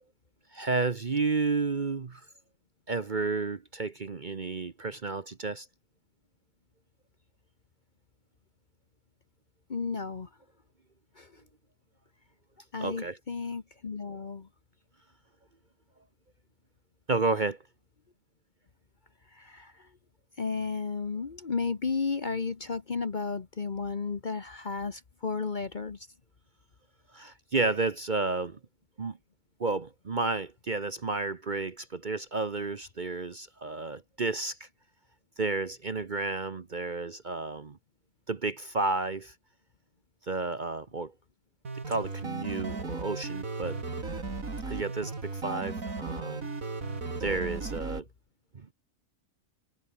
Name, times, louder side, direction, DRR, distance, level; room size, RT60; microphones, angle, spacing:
voice 1, 0.5-2.3 2.9-5.7 12.8-13.2 17.1-17.6 27.1-28.6 29.0-29.2 29.6-34.7 35.4-37.8 38.3-39.3 40.2-41.1 41.9-43.8 44.7-46.5 47.2-48.1 48.5-48.7, right 3 dB, 35° right, 1.0 m, -31 dB
voice 2, 9.7-10.3 11.2-11.4 12.7-14.5 19.3-19.9 20.4-26.1, left 4 dB, 35° left, 1.0 m, -33 dB
sound 1, 41.6-48.0, right 3 dB, 65° right, 3.6 m, -36 dB
omnidirectional pair, 1.6 m